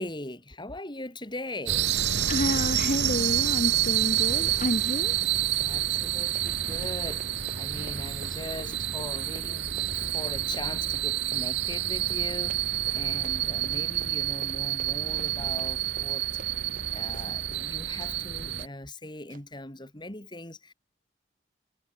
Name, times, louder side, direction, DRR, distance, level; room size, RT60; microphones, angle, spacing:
voice 1, 0.0-2.0 5.6-7.2 7.6-16.3 16.9-20.7, left 1 dB, 25° left, 3.9 m, -40 dB
sound 1, 1.7-18.7, right 11 dB, 70° right, 4.6 m, -28 dB
Run, 2.1-2.4 2.6-17.7 18.0-18.2 18.6-18.7 19.3-19.4, right 2 dB, 50° right, 7.9 m, -51 dB
voice 2, 2.3-5.2, left 1 dB, 45° left, 2.6 m, -29 dB
head